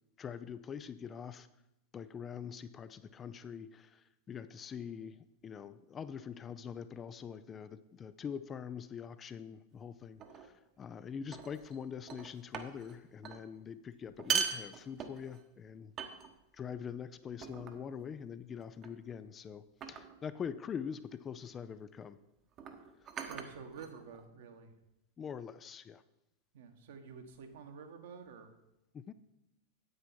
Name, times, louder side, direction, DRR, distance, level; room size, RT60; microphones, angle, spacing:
voice 1, 0.2-1.5 1.9-15.9 16.5-22.2 25.2-26.0 28.9-29.1, left 7 dB, 25° left, 13 dB, 0.5 m, -44 dB
sound 1, 10.2-10.5 11.3-11.8 12.1-13.0 13.2-13.4 14.1-15.4 16.0-16.6 17.4-17.9 18.8-19.1 19.8-20.2 21.4-21.6 22.5-24.3, right 7 dB, 30° right, 1.1 m, -39 dB
voice 2, 23.2-24.7 26.5-28.5, right 5 dB, 55° right, 6 dB, 1.4 m, -49 dB
9.5 x 9.0 x 4.4 m, 0.89 s
figure-of-eight pair, 90°, 0 cm